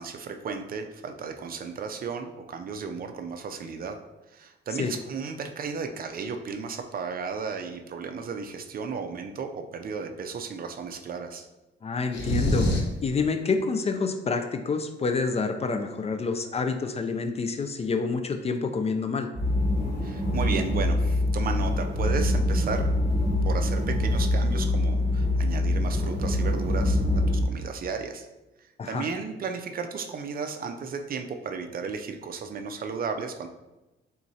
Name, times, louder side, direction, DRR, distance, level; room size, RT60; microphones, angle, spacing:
voice 1, 0.0-4.0 4.3-11.5 20.0-22.9 23.4-28.3 28.9-33.5, right 5 dB, 45° right, 6 dB, 0.5 m, -34 dB
voice 2, 11.8-19.3 28.8-29.1, left 4 dB, 30° left, 8 dB, 0.4 m, -28 dB
sound 1, 12.1-13.0, equal, 60° left, 1.1 m, -25 dB
sound 2, 19.4-27.5, left 1 dB, 30° right, 1.3 m, -24 dB
4.3 x 3.7 x 2.7 m, 1.0 s
cardioid pair, 90°, 20 cm